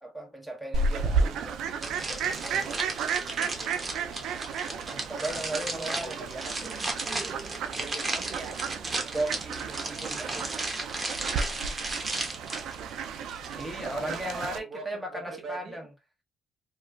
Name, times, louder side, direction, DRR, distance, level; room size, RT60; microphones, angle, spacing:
voice 1, 0.0-2.7 4.9-6.3 7.5-7.6 9.1-10.6 13.6-15.9, right 1 dB, ahead, 1.0 m, -37 dB
Fowl, 0.7-14.6, right 5 dB, 85° right, 0.4 m, -33 dB
sound 1, 1.8-14.5, right 2 dB, 25° right, 0.9 m, -35 dB
voice 2, 3.7-4.4 5.2-6.9 7.6-8.9 9.5-9.9 11.4-11.5 12.6-13.1 14.0-15.9, right 3 dB, 55° right, 0.8 m, -44 dB
2.9 x 2.4 x 2.3 m
cardioid pair, 90°, 0 cm